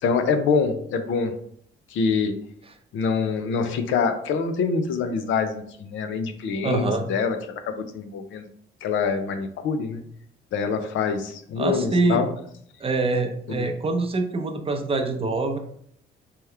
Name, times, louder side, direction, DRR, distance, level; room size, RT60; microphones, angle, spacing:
voice 1, 0.0-1.3 1.9-2.4 2.9-8.5 8.8-10.0 10.5-12.3 13.5-13.7, left 5 dB, 75° left, 7 dB, 0.6 m, -25 dB
voice 2, 6.6-7.0 11.6-12.3 12.8-15.6, right 3 dB, 30° right, 5 dB, 0.6 m, -24 dB
3.5 x 2.9 x 3.3 m, 0.67 s
cardioid pair, 90°, 20 cm